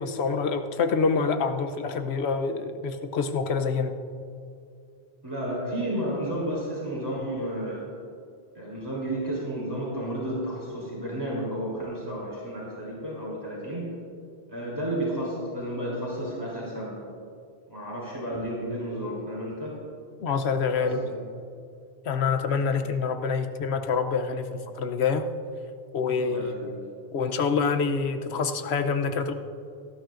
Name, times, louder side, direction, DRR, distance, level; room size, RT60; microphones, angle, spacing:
voice 1, 0.0-3.9 20.2-21.1 22.0-25.3 25.9-26.7 27.1-29.3, left 5 dB, 75° left, 8 dB, 1.0 m, -26 dB
voice 2, 5.2-7.8 8.5-13.8 14.5-17.0 17.7-19.7 20.8-21.2 22.7-22.8 26.2-26.8, right 1 dB, 20° right, -6 dB, 3.4 m, -32 dB
18.5 x 13.0 x 2.5 m, 2.5 s
omnidirectional pair, 1.1 m